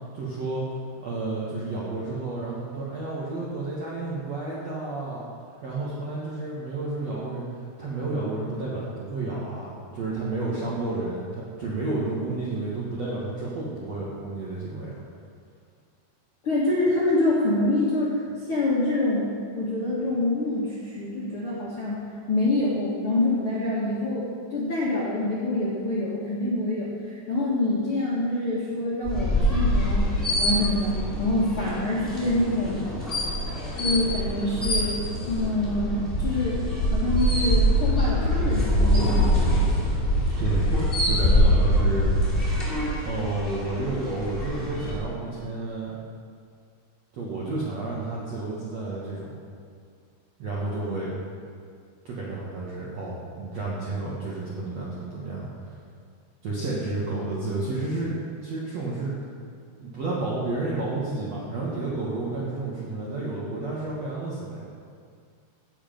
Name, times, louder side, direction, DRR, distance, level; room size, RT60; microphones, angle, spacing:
voice 1, 0.1-0.6 1.0-5.2 5.6-15.0 40.4-42.1 43.0-46.0 47.1-49.3 50.4-51.1 52.0-55.7 56.4-59.2 59.8-64.7, right 2 dB, 60° right, -6 dB, 1.7 m, -31 dB
voice 2, 16.4-18.2 18.5-19.3 19.5-22.0 22.3-30.1 30.4-32.8 33.8-35.0 35.3-36.6 36.9-39.5, left 2 dB, 55° left, -8 dB, 1.6 m, -26 dB
sound 1, 29.0-45.0, equal, 15° left, 2.9 m, -24 dB
16.5 x 7.4 x 5.2 m, 2.2 s
omnidirectional pair, 5.2 m